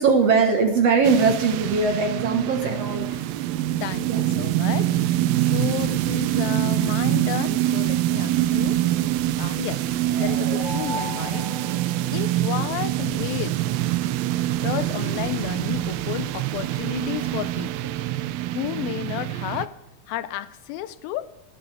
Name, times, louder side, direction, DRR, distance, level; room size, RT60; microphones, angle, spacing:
voice 1, 0.0-3.1 4.1-4.2, right 5 dB, 55° right, 2.0 m, -20 dB
sound 1, 1.0-19.7, right 14 dB, 80° right, 2.4 m, -25 dB
voice 2, 3.8-5.2 5.5-8.8 9.4-9.8 10.2-11.5 12.1-13.6 14.6-17.9 18.6-19.8 20.1-21.3, left 14 dB, 85° left, 2.4 m, -32 dB
sound 2, 9.8-12.7, equal, 30° right, 7.0 m, -36 dB
26.0 x 12.0 x 3.5 m
omnidirectional pair, 4.2 m